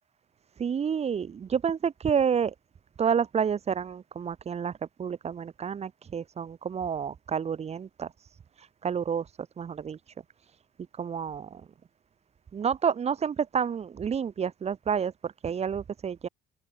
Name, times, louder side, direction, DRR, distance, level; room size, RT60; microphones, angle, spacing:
voice 1, 0.6-2.5 3.0-4.7 5.0-8.3 8.6-10.1 10.4-10.6 11.0-11.6 12.5-16.3, right 7 dB, 40° right, 2.9 m, -29 dB
cardioid pair, 110°, 17 cm